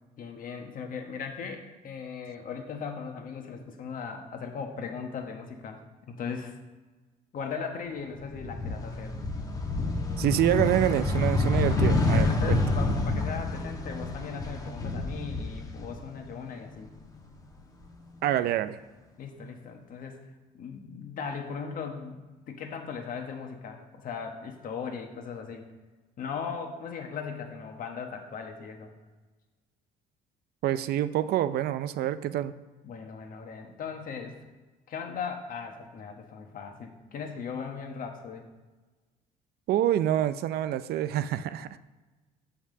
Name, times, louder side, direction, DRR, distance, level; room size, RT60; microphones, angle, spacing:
voice 1, 0.2-6.5 7.3-9.2 11.8-16.9 19.2-20.2 20.5-25.7 26.2-28.9 32.8-34.4 34.9-38.4, left 6 dB, 55° left, 3 dB, 1.5 m, -38 dB
sound 1, 8.2-16.3 16.7-17.9, left 2 dB, 20° left, 1.2 m, -28 dB
voice 2, 10.2-12.6 18.2-18.8 30.6-32.5 39.7-41.7, right 12 dB, 70° right, 13 dB, 0.5 m, -26 dB
7.3 x 5.7 x 6.8 m, 1.2 s
cardioid pair, 110°, 17 cm